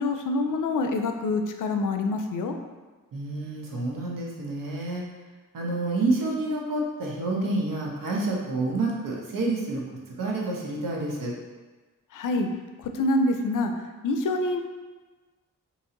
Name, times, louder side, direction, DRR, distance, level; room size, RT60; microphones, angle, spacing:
voice 1, 0.0-2.5 12.1-12.5 12.8-13.7 14.0-14.6, left 2 dB, 65° left, 5 dB, 0.5 m, -26 dB
voice 2, 3.1-5.0 5.5-9.8 10.2-11.3, right 2 dB, 70° right, -2 dB, 0.9 m, -28 dB
3.0 x 2.7 x 3.7 m, 1.3 s
supercardioid pair, 45°, 34 cm